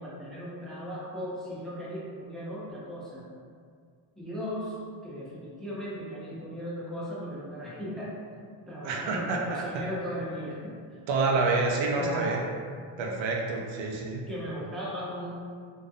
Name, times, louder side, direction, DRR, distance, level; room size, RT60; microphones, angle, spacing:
voice 1, 0.0-3.3 4.2-4.8 5.0-8.2 8.7-11.0 11.9-12.4 14.3-15.3, equal, ahead, -7 dB, 0.5 m, -37 dB
voice 2, 8.8-9.8 11.1-12.4 13.0-14.2, right 3 dB, 70° right, 0 dB, 0.5 m, -28 dB
2.3 x 2.2 x 2.5 m, 2.1 s
cardioid pair, 95°, 48 cm